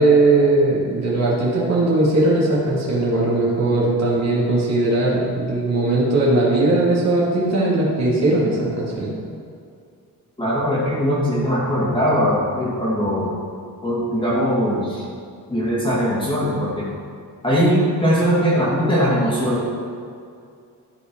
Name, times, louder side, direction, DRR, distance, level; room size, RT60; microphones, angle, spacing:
voice 1, 0.0-9.1, right 2 dB, 50° right, -6 dB, 2.4 m, -19 dB
voice 2, 10.4-13.3 13.8-15.0 15.5-16.8 17.4-19.7, equal, 15° left, -7 dB, 2.3 m, -20 dB
13.5 x 5.1 x 4.6 m, 2.3 s
wide cardioid pair, 165°, 35 cm